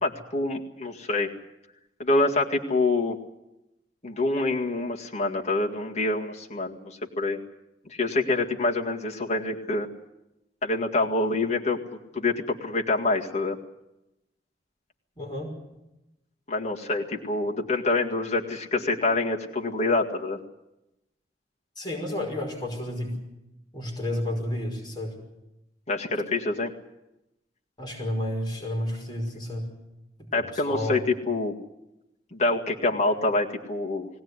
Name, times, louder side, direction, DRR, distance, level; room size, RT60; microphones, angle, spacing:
voice 1, 0.0-1.3 2.0-3.2 4.0-7.4 7.9-9.9 10.6-11.8 12.1-13.6 16.5-20.4 25.9-26.7 30.3-31.6 32.3-34.1, left 2 dB, 40° left, -1 dB, 2.0 m, -26 dB
voice 2, 15.2-15.5 21.8-23.1 23.7-25.1 27.8-29.7 30.3-31.0, left 1 dB, 25° left, -1 dB, 5.4 m, -31 dB
21.0 x 17.5 x 9.7 m, 0.92 s
head